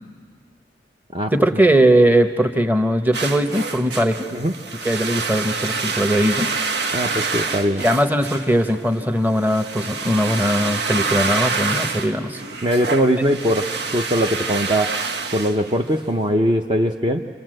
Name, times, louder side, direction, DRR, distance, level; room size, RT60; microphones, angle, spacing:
voice 1, 1.3-4.3 4.8-6.5 7.7-12.4, right 1 dB, 10° right, 7 dB, 1.0 m, -19 dB
sound 1, 3.1-16.2, right 4 dB, 75° right, 1.2 m, -27 dB
voice 2, 6.9-7.8 12.6-15.0 15.3-17.2, equal, 30° right, 3 dB, 0.7 m, -21 dB
28.0 x 26.5 x 7.8 m, 2.1 s
head